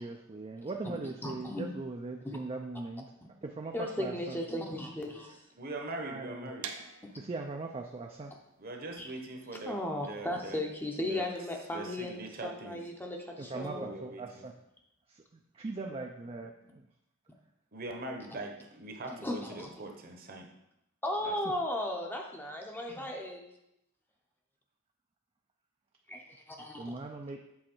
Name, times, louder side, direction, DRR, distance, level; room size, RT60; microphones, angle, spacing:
voice 1, 0.0-3.1 3.4-4.4 6.0-6.5 7.1-8.3 13.5-14.5 15.1-15.2 15.5-16.8 26.8-27.4, right 3 dB, 25° right, 2 dB, 0.4 m, -40 dB
voice 2, 0.8-1.7 2.2-2.4 3.7-5.4 7.0-7.1 9.0-9.1 9.6-13.9 19.1-19.7 21.0-23.4 26.1-26.9, left 1 dB, 10° left, 1 dB, 0.7 m, -36 dB
voice 3, 5.6-6.7 8.6-10.6 11.0-11.3 11.7-12.8 13.5-14.4 17.7-20.5 21.2-21.6, right 2 dB, 45° right, 3 dB, 0.9 m, -42 dB
sound 1, 6.6-12.4, right 6 dB, 70° right, 0.6 m, -48 dB
7.6 x 4.1 x 4.4 m, 0.84 s
head